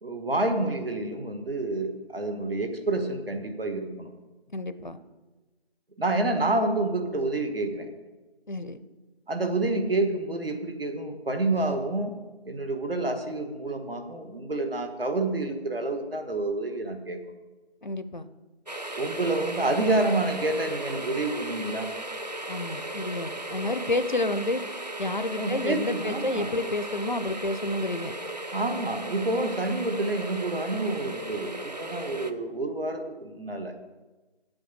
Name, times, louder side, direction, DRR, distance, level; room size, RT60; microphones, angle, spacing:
voice 1, 0.0-4.1 6.0-7.9 9.3-12.1 12.4-17.2 19.0-21.9 25.4-26.5 28.5-33.7, right 2 dB, 65° right, 6 dB, 1.6 m, -28 dB
voice 2, 4.5-5.0 8.5-8.8 17.8-18.3 22.5-24.6 25.0-28.1, left 2 dB, 50° left, 11 dB, 0.6 m, -30 dB
sound 1, 18.7-32.3, right 1 dB, 40° right, 0.5 m, -36 dB
8.3 x 8.0 x 6.8 m, 1.2 s
figure-of-eight pair, 175°, 31 cm